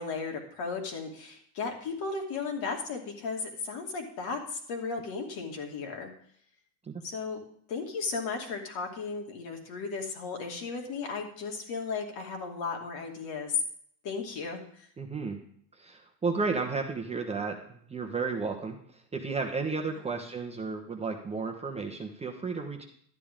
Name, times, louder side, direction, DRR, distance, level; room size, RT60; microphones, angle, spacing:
voice 1, 0.0-6.1 7.0-7.4 7.7-13.6 14.0-14.9 19.9-20.1, left 4 dB, 55° left, 2 dB, 2.5 m, -35 dB
voice 2, 15.0-15.4 15.7-22.8, right 4 dB, 15° right, 1 dB, 1.0 m, -33 dB
12.0 x 9.5 x 3.7 m, 0.63 s
supercardioid pair, 135°, 45 cm